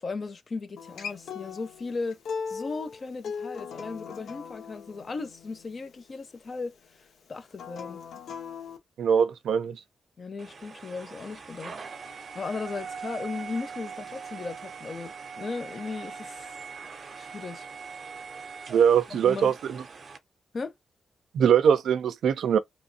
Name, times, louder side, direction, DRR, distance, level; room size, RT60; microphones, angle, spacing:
voice 1, 0.0-2.2 2.5-6.7 7.3-8.0 10.2-11.7 12.3-16.3 17.2-17.7 19.1-19.5 20.5-20.7, left 4 dB, 35° left, 0.6 m, -36 dB
Acoustic guitar, 0.8-6.0 7.5-8.8, left 6 dB, 85° left, 0.8 m, -39 dB
voice 2, 9.0-9.8 18.7-19.8 21.3-22.6, right 8 dB, 85° right, 0.5 m, -22 dB
sound 1, 10.4-20.2, right 5 dB, 40° right, 0.6 m, -42 dB
3.0 x 2.6 x 2.7 m
wide cardioid pair, 155°, 0 cm